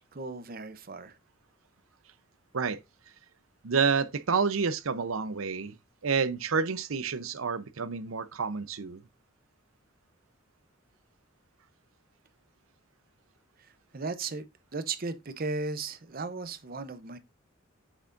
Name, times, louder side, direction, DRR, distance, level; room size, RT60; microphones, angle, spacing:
voice 1, 0.1-1.2 13.6-14.4 14.7-17.2, right 4 dB, 45° right, 0.8 m, -36 dB
voice 2, 3.6-5.8 6.0-9.0, right 5 dB, 90° right, 0.7 m, -29 dB
8.2 x 6.0 x 2.6 m
head